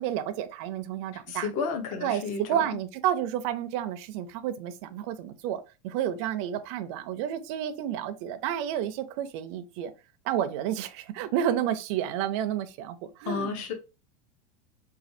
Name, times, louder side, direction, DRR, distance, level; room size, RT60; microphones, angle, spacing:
voice 1, 0.0-1.5 2.0-9.9 10.2-13.7, right 10 dB, 50° right, 0.4 m, -30 dB
voice 2, 1.3-2.8 13.3-13.7, left 5 dB, 40° left, 0.7 m, -32 dB
4.1 x 2.3 x 2.6 m
supercardioid pair, 160°, 20 cm